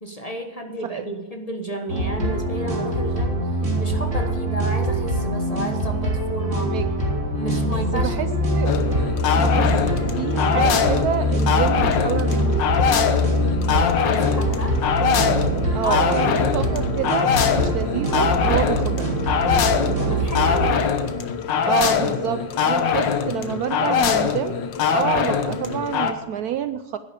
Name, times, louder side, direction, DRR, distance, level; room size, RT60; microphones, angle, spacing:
voice 1, 0.0-6.7 7.3-8.4 13.6-14.8 15.8-16.0 20.0-20.7, right 1 dB, 25° left, 4 dB, 1.2 m, -32 dB
sound 1, 1.9-20.8, equal, 40° right, 3.4 m, -23 dB
voice 2, 6.5-6.9 7.7-8.3 8.5-8.7 9.3-12.6 15.7-19.1 21.6-27.0, right 10 dB, 70° right, 11 dB, 1.0 m, -28 dB
sound 2, 8.7-26.1, left 7 dB, 85° left, 1.8 m, -22 dB
11.0 x 9.9 x 6.8 m, 1.3 s
omnidirectional pair, 1.9 m